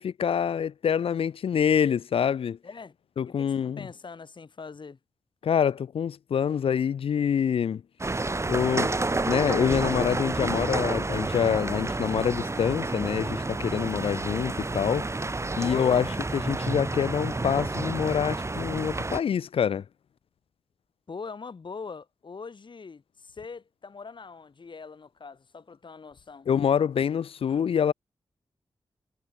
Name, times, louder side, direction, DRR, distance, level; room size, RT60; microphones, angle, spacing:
voice 1, 0.0-2.6 3.2-3.8 5.4-7.8 8.5-8.9 9.3-15.1 15.6-16.0 16.4-19.8 26.5-27.9, left 8 dB, 75° left, 0.5 m, -26 dB
voice 2, 2.6-3.0 3.2-5.0 15.5-16.1 21.1-26.5, left 5 dB, 55° left, 3.8 m, -42 dB
sound 1, 8.0-19.2, right 2 dB, 30° right, 2.1 m, -30 dB
cardioid pair, 60°, 10 cm